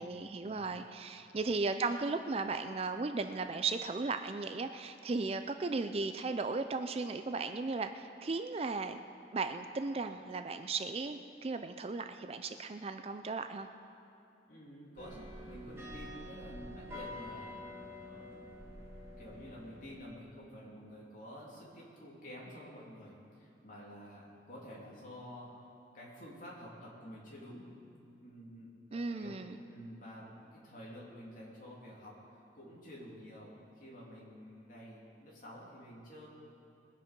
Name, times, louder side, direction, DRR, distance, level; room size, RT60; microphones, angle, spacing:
voice 1, 0.0-9.0 9.3-13.7 28.9-29.6, right 3 dB, 35° right, 8 dB, 0.4 m, -36 dB
voice 2, 14.5-18.8 19.2-25.6 25.9-27.7 28.2-29.4 29.6-36.3, equal, 45° left, -5 dB, 3.1 m, -50 dB
sound 1, 15.0-20.0, left 1 dB, 15° right, 2.0 m, -47 dB
21.0 x 8.3 x 5.3 m, 2.6 s
head